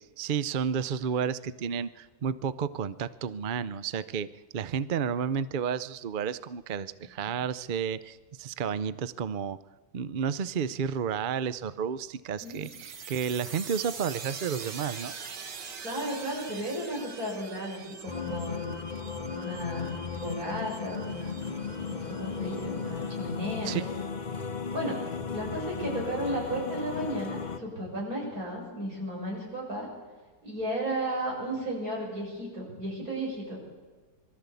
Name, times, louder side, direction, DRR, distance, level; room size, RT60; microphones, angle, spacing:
voice 1, 0.2-4.3 4.5-9.6 9.9-15.1 23.6-23.8, right 7 dB, 70° right, 15 dB, 0.4 m, -31 dB
sound 1, 12.4-23.8, right 5 dB, 85° right, 2.2 m, -44 dB
voice 2, 15.8-18.8 19.2-21.5 21.9-23.8 24.7-25.0 25.3-29.9 30.4-33.6, right 1 dB, 55° right, -2 dB, 7.5 m, -34 dB
sound 2, 18.1-27.6, left 5 dB, 35° left, 0.8 m, -36 dB
23.5 x 13.5 x 8.3 m, 1.3 s
omnidirectional pair, 1.8 m